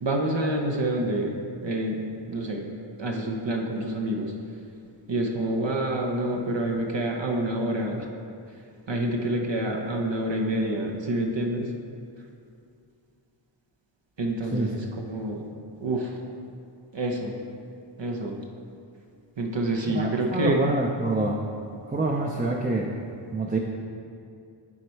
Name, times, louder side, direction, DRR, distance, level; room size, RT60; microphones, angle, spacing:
voice 1, 0.0-2.0 2.3-2.7 3.0-4.3 5.1-8.1 8.9-11.7 14.2-15.5 15.8-16.2 16.9-17.3 18.0-18.4 19.4-20.6, right 1 dB, 65° right, 1 dB, 0.8 m, -27 dB
voice 2, 19.8-21.4 21.9-22.9 23.3-23.6, right 2 dB, 20° right, 0 dB, 0.5 m, -26 dB
9.7 x 4.2 x 4.5 m, 2.4 s
wide cardioid pair, 60°, 48 cm